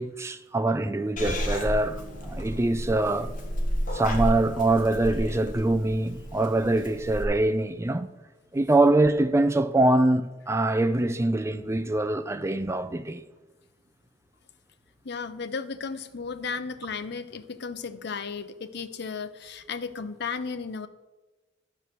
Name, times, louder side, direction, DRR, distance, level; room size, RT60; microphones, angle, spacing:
voice 1, 0.0-3.3 3.9-8.1 8.5-13.2, right 2 dB, 15° right, 0.5 m, -24 dB
Purr / Meow, 1.2-7.2, equal, 45° left, 1.5 m, -32 dB
voice 2, 15.0-20.9, left 5 dB, 60° left, 0.6 m, -34 dB
12.0 x 4.7 x 6.8 m
head